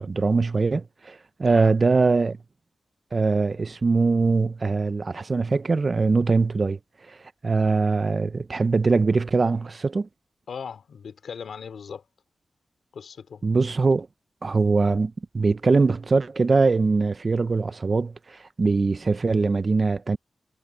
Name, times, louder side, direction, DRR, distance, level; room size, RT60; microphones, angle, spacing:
voice 1, 0.0-2.4 3.1-6.8 7.4-10.1 13.4-14.1 14.4-20.2, right 4 dB, 40° right, 0.7 m, -22 dB
voice 2, 1.4-1.7 10.5-12.0 12.9-13.4, left 6 dB, 80° left, 3.4 m, -38 dB
wide cardioid pair, 85°, 0 cm